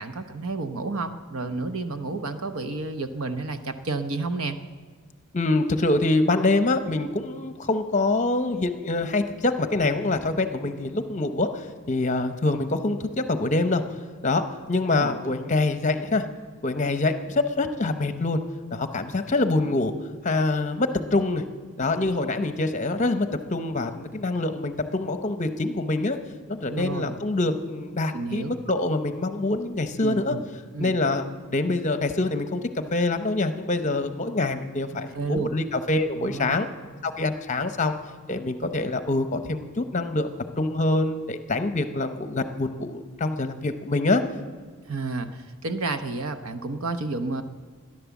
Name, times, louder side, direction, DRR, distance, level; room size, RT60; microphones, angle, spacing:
voice 1, 0.0-4.6 14.9-15.2 26.7-27.2 28.1-28.5 30.0-30.4 30.7-30.9 35.1-35.5 36.1-36.6 44.9-47.4, right 3 dB, 70° right, 8 dB, 0.9 m, -30 dB
voice 2, 5.3-11.6 11.9-13.8 14.2-14.4 14.7-16.3 16.6-18.4 18.7-19.9 20.2-21.4 21.8-26.2 26.5-30.3 30.8-31.2 31.5-32.6 32.9-36.7 37.0-38.0 38.3-44.2, left 2 dB, 35° left, 9 dB, 0.8 m, -25 dB
15.0 x 11.0 x 7.2 m, 1.5 s
head